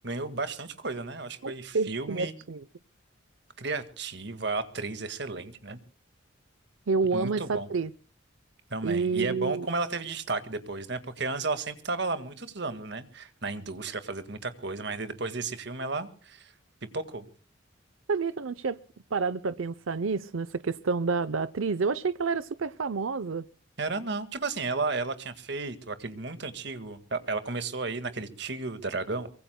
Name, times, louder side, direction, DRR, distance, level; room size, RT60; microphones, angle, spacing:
voice 1, 0.0-2.3 3.6-5.8 7.1-7.7 8.7-16.5 16.9-17.3 23.8-29.3, right 3 dB, 55° right, 1.8 m, -33 dB
voice 2, 1.4-2.6 6.9-7.9 8.8-9.7 18.1-18.8 19.1-23.4, right 4 dB, 80° right, 0.6 m, -29 dB
24.0 x 23.0 x 2.2 m
head